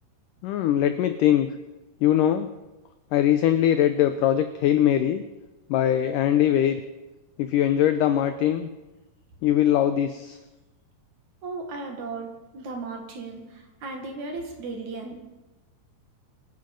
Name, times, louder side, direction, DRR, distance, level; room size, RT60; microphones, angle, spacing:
voice 1, 0.4-1.5 2.0-2.5 3.1-5.2 5.7-6.8 7.4-8.7 9.4-10.4, left 11 dB, 85° left, 9 dB, 1.8 m, -21 dB
voice 2, 11.4-15.2, right 3 dB, 55° right, 3 dB, 2.9 m, -36 dB
25.5 x 9.7 x 5.2 m, 1.1 s
omnidirectional pair, 4.6 m